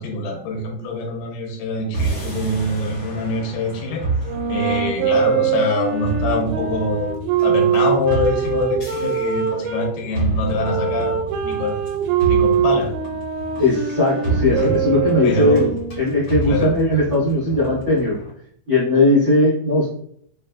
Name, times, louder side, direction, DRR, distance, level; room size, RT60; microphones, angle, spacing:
voice 1, 0.0-4.0 4.5-7.1 7.4-11.8 12.2-12.9 14.5-14.7 15.2-15.7 16.5-16.7, left 2 dB, 85° left, 1 dB, 2.6 m, -24 dB
sound 1, 1.9-18.3, right 3 dB, 60° left, 1.3 m, -29 dB
sound 2, 4.2-9.9 10.6-16.1, right 8 dB, 80° right, 2.4 m, -23 dB
voice 2, 13.6-15.7 16.0-18.2 18.7-19.9, left 2 dB, 45° right, -7 dB, 1.5 m, -18 dB
5.9 x 2.7 x 2.3 m, 0.64 s
omnidirectional pair, 4.6 m